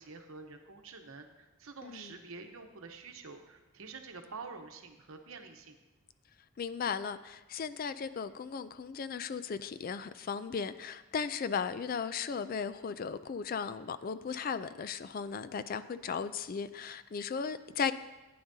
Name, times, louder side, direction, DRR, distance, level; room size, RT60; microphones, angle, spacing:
voice 1, 0.0-5.8, right 4 dB, 70° right, 5 dB, 0.9 m, -48 dB
voice 2, 1.8-2.2 6.6-17.9, left 6 dB, 40° left, 13 dB, 0.3 m, -36 dB
15.0 x 9.4 x 2.7 m, 1.1 s
head